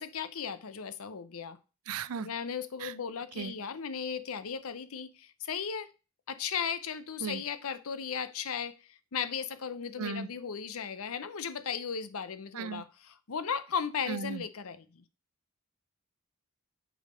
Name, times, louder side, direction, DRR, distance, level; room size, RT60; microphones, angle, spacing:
voice 1, 0.0-1.6 2.2-5.9 6.3-15.0, left 7 dB, 75° left, 0.6 m, -36 dB
voice 2, 1.9-2.3 2.8-2.9 3.4-3.5 7.2-7.4 10.0-10.3 12.5-12.8 14.1-14.4, right 6 dB, 80° right, 0.4 m, -36 dB
6.4 x 4.0 x 5.0 m
head